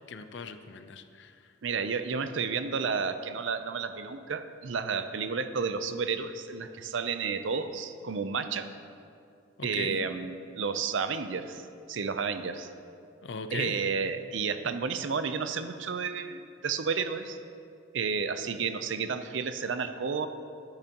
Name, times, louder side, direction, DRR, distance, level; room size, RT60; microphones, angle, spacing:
voice 1, 0.1-1.5 9.6-10.0 13.2-13.8, left 4 dB, 65° left, 9 dB, 0.6 m, -39 dB
voice 2, 1.6-8.7 9.6-12.7 13.5-17.4 17.9-20.3, right 5 dB, 70° right, 10 dB, 0.6 m, -31 dB
13.5 x 10.5 x 3.0 m, 2.5 s
head